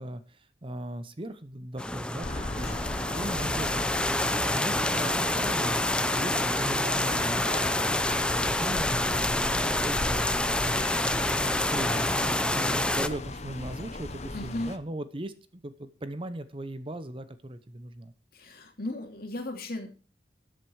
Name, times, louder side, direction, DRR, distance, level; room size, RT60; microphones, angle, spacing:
voice 1, 0.0-2.8 3.1-5.7 6.1-10.9 11.4-18.1, right 1 dB, 30° right, 12 dB, 0.8 m, -39 dB
sound 1, 1.8-13.1, left 1 dB, 5° left, 0.6 m, -27 dB
sound 2, 2.2-14.8, left 2 dB, 40° left, 1.0 m, -38 dB
voice 2, 14.3-14.7 18.3-19.9, left 1 dB, 55° left, 3 dB, 2.9 m, -36 dB
13.5 x 7.9 x 4.7 m, 0.36 s
head